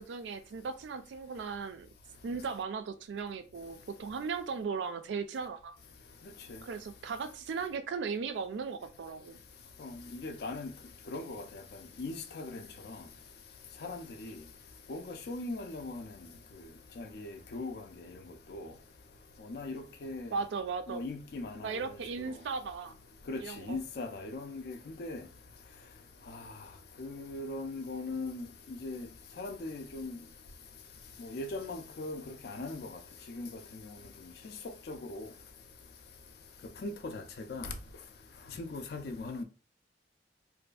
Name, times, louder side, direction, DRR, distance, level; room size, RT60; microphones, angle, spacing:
voice 1, 0.0-1.9 2.2-5.8 6.6-9.4 20.3-21.0 21.6-23.0 23.4-23.8, right 5 dB, 85° right, 0.3 m, -37 dB
voice 2, 9.8-10.7 11.1-11.4 12.0-12.6 13.8-14.3 14.9-16.0 17.0-17.8 18.5-18.7 19.5-20.3 20.9-21.7 23.3-23.4 23.7-25.2 27.0-28.5 28.8-29.1 29.4-30.2 31.2-32.9 33.3-33.5 34.9-35.3 36.8-37.2 37.5-37.7 38.6-39.4, left 2 dB, 60° left, 0.4 m, -39 dB
2.6 x 2.4 x 2.3 m
head